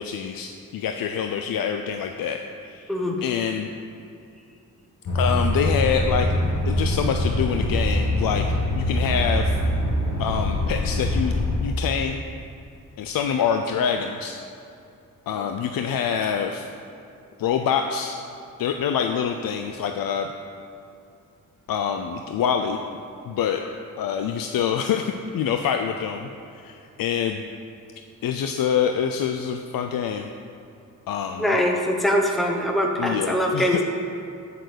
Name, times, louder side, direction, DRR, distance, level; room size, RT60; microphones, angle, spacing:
voice 1, 0.0-2.4 2.7-2.9 3.2-3.7 5.1-6.3 6.7-8.5 8.7-9.6 10.2-11.3 11.6-12.2 13.0-14.4 15.3-16.7 17.4-18.2 18.6-20.3 21.7-22.8 23.3-23.6 24.0-26.3 26.6-27.4 28.2-30.3 31.1-31.6 33.0-33.8, left 7 dB, 85° left, 5 dB, 0.6 m, -25 dB
voice 2, 2.9-3.2 31.4-33.8, equal, ahead, 1 dB, 1.0 m, -22 dB
sound 1, 5.1-11.6, left 1 dB, 60° left, 2.1 m, -23 dB
9.0 x 6.8 x 8.1 m, 2.6 s
cardioid pair, 110°, 34 cm